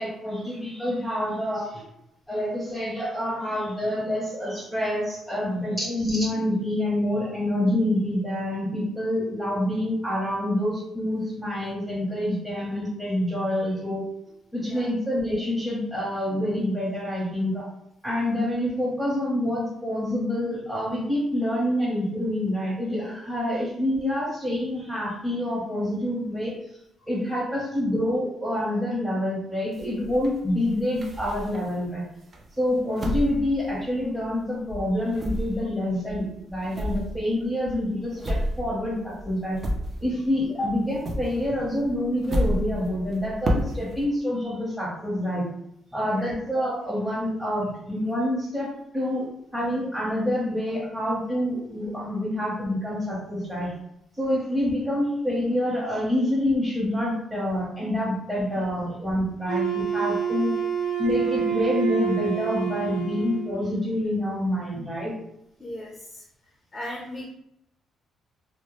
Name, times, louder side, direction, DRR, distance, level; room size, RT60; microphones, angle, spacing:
voice 1, 0.0-1.8 2.3-14.0 14.5-17.6 18.0-26.5 27.1-32.0 32.6-39.6 40.0-45.4 45.9-49.2 49.5-53.7 54.2-60.5 61.0-65.1, left 1 dB, 5° right, -8 dB, 0.8 m, -27 dB
sound 1, 29.7-31.9 32.3-34.4 34.7-40.4 40.7-44.0, equal, 40° right, 0.4 m, -31 dB
Wind instrument woodwind instrument, 59.5-63.6, right 7 dB, 90° right, 0.7 m, -27 dB
voice 2, 65.6-66.2 66.7-67.3, left 1 dB, 20° left, -1 dB, 0.5 m, -35 dB
2.1 x 2.0 x 2.9 m, 0.80 s
cardioid pair, 90°, 0 cm